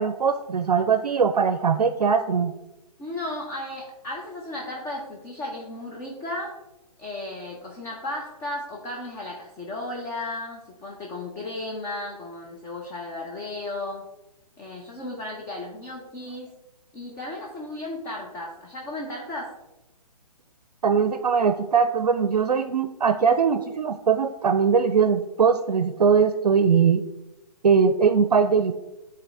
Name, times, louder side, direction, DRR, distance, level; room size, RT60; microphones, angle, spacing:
voice 1, 0.0-2.5 20.8-27.0 27.6-28.7, right 6 dB, 75° right, 9 dB, 0.5 m, -21 dB
voice 2, 3.0-6.6 7.0-14.1 14.6-16.5 16.9-19.5, left 2 dB, 15° left, -2 dB, 0.7 m, -34 dB
9.0 x 4.0 x 3.3 m, 0.97 s
figure-of-eight pair, 135°, 20 cm